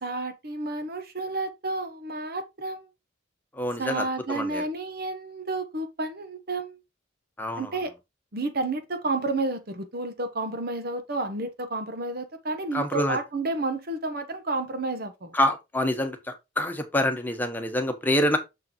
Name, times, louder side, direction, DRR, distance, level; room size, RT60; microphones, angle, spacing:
voice 1, 0.0-2.9 3.8-6.8 7.6-7.9 8.3-15.3, right 2 dB, 50° right, 1.1 m, -31 dB
voice 2, 3.6-4.6 7.4-7.7 12.7-13.2 15.3-16.2 16.6-18.4, left 1 dB, 10° left, 1.2 m, -26 dB
6.7 x 6.6 x 3.0 m
head